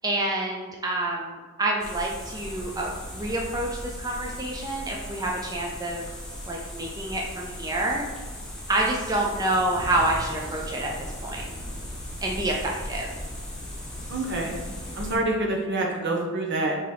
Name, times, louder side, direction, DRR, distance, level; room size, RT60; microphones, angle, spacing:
voice 1, 0.0-6.0 6.5-8.0 8.7-10.9 11.2-11.5 12.2-13.1, right 1 dB, 20° right, -2 dB, 0.4 m, -28 dB
sound 1, 1.8-15.2, equal, 5° left, 1.0 m, -38 dB
sound 2, 9.5-15.2, equal, 35° left, 0.6 m, -42 dB
voice 2, 14.1-14.5 14.9-16.8, right 2 dB, 55° right, 1 dB, 0.8 m, -26 dB
3.8 x 2.9 x 4.8 m, 1.3 s
head